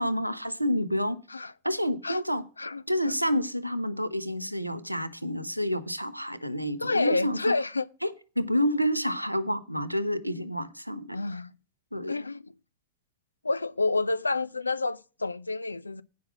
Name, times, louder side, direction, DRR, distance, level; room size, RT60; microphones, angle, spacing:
voice 1, 0.0-1.2 1.6-2.4 2.9-7.5 8.0-11.2 11.9-12.1, equal, 90° right, 0.7 m, -29 dB
voice 2, 6.8-7.9 11.1-11.5 12.1-12.4 13.4-16.0, left 3 dB, 80° left, 0.3 m, -28 dB
9.5 x 5.8 x 4.9 m
figure-of-eight pair, 90°, 0 cm